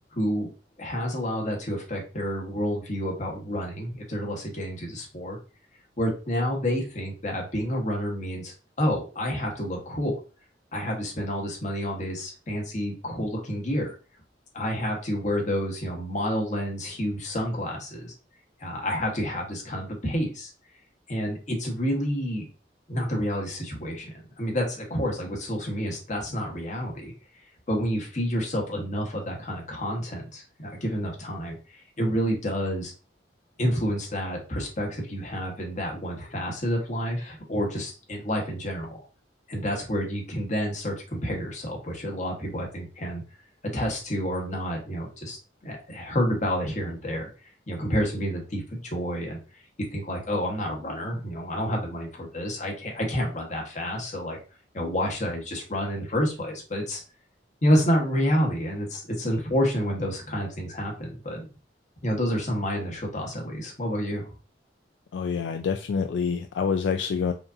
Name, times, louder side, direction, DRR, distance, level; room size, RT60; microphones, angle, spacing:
voice 1, 0.1-0.5 0.8-5.4 6.0-10.2 10.7-13.9 14.5-18.1 18.6-20.5 21.1-22.5 22.9-27.1 27.7-31.6 32.0-32.9 33.6-39.0 39.5-43.2 43.7-47.3 47.7-49.4 49.9-54.4 54.7-57.0 57.6-61.5 62.0-64.3, equal, 45° left, 0 dB, 1.2 m, -29 dB
voice 2, 65.1-67.3, left 6 dB, 70° left, 6 dB, 0.3 m, -27 dB
5.0 x 2.6 x 2.6 m, 0.34 s
head